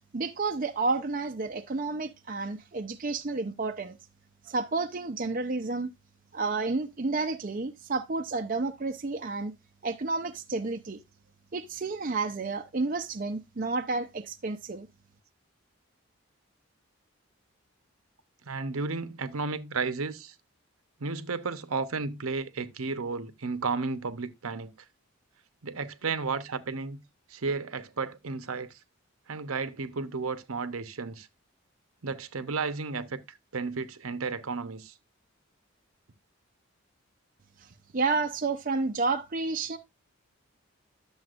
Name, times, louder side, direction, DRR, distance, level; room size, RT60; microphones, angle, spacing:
voice 1, 0.1-4.0 4.5-5.9 6.3-9.5 9.8-11.0 11.5-14.9 37.9-39.8, right 3 dB, 40° right, 0.6 m, -30 dB
voice 2, 18.5-20.3 21.0-24.7 25.6-27.0 27.3-28.7 29.3-31.3 32.0-33.2 33.5-34.9, right 4 dB, 80° right, 0.9 m, -33 dB
11.0 x 7.1 x 2.5 m
head